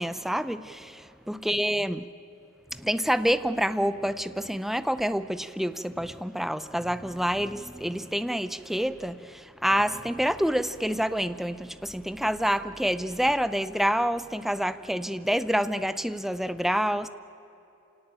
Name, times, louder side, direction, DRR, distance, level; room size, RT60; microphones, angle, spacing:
voice 1, 0.0-2.1 2.7-17.1, equal, ahead, 0.5 m, -27 dB
28.0 x 18.0 x 8.9 m
head